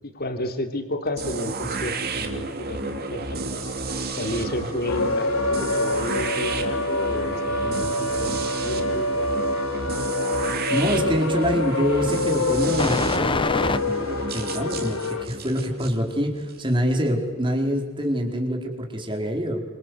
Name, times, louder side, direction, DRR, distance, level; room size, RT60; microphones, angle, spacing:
voice 1, 0.0-3.7 4.1-9.3, left 1 dB, 50° left, 6 dB, 3.2 m, -32 dB
sound 1, 1.2-17.0, right 3 dB, 50° right, 2.8 m, -31 dB
sound 2, 3.7-6.4 6.7-7.8 12.8-13.8, left 3 dB, 25° left, 0.9 m, -27 dB
sound 3, 4.9-15.3, left 2 dB, 90° left, 1.3 m, -27 dB
voice 2, 10.7-13.3 13.9-19.6, equal, 25° right, 2 dB, 4.6 m, -25 dB
27.5 x 26.5 x 8.1 m, 1.3 s
head